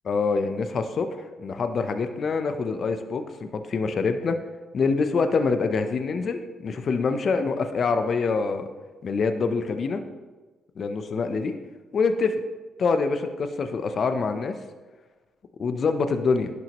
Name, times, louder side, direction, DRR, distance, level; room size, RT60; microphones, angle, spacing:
voice 1, 0.1-4.4 4.7-8.7 9.0-10.0 10.8-11.6 11.9-12.4 12.8-14.5 15.6-16.5, left 4 dB, 50° left, 8 dB, 0.6 m, -25 dB
11.0 x 6.0 x 2.9 m, 1.3 s
cardioid pair, 90°, 0 cm